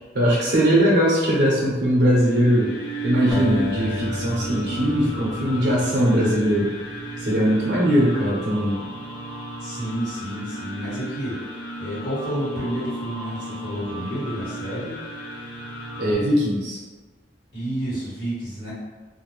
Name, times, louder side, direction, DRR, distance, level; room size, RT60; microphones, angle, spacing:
voice 1, 0.1-2.7 3.0-6.7 7.2-8.8 16.0-16.8, equal, 65° right, -5 dB, 0.6 m, -20 dB
sound 1, 1.9-16.1, right 1 dB, 65° left, 0.5 m, -35 dB
sound 2, 3.3-6.5, left 1 dB, 5° right, 0.4 m, -32 dB
voice 2, 9.6-11.4 11.8-15.0 17.5-18.7, right 1 dB, 85° left, -8 dB, 1.4 m, -30 dB
2.4 x 2.1 x 3.1 m, 1.3 s
head